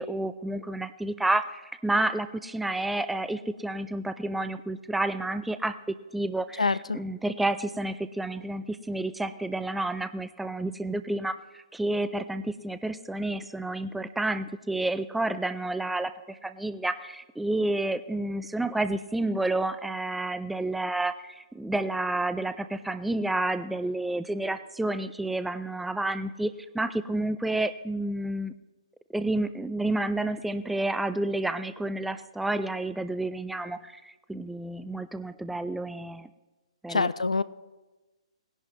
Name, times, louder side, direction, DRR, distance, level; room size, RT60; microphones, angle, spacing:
voice 1, 0.0-28.5 29.1-36.3 36.8-37.1, right 2 dB, 5° right, 12 dB, 0.4 m, -30 dB
voice 2, 36.9-37.4, left 4 dB, 80° left, 16 dB, 0.4 m, -24 dB
19.0 x 11.0 x 3.1 m, 1.1 s
figure-of-eight pair, 125°, 3 cm